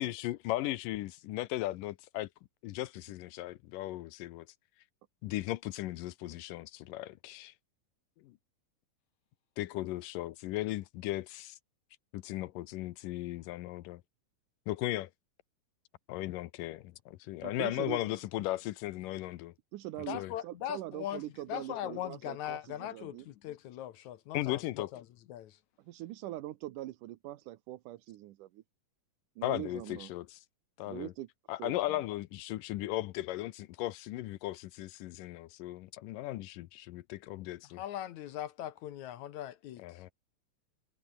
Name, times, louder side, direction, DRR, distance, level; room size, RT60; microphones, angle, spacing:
voice 1, 0.0-2.3 2.6-4.5 5.2-7.5 8.2-8.3 9.6-11.6 12.1-14.0 14.7-15.1 16.1-19.5 20.1-20.3 24.3-24.9 29.4-30.4 30.8-31.1 31.5-37.8 39.8-40.1, left 16 dB, 85° left, 2.4 m, -36 dB
voice 2, 17.4-18.2 19.7-23.3 25.9-28.6 29.4-30.1 30.8-31.3 31.6-32.1, right 15 dB, 75° right, 2.3 m, -43 dB
voice 3, 20.1-21.2 21.5-25.6 37.8-40.0, left 12 dB, 70° left, 2.1 m, -40 dB
omnidirectional pair, 3.9 m